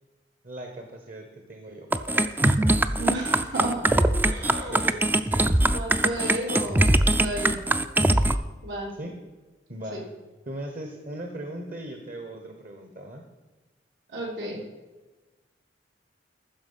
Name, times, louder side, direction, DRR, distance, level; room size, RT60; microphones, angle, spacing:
voice 1, 0.4-3.0 4.7-5.7 8.9-9.2 9.7-10.1 10.5-13.2, right 1 dB, 45° right, 4 dB, 1.2 m, -39 dB
sound 1, 1.9-8.3, right 1 dB, 10° right, 0.4 m, -22 dB
voice 2, 3.0-3.8 4.2-4.9 5.7-7.6 8.6-8.9 9.9-10.0 14.1-14.6, right 1 dB, 80° right, -2 dB, 3.6 m, -32 dB
14.5 x 6.2 x 5.6 m, 1.2 s
head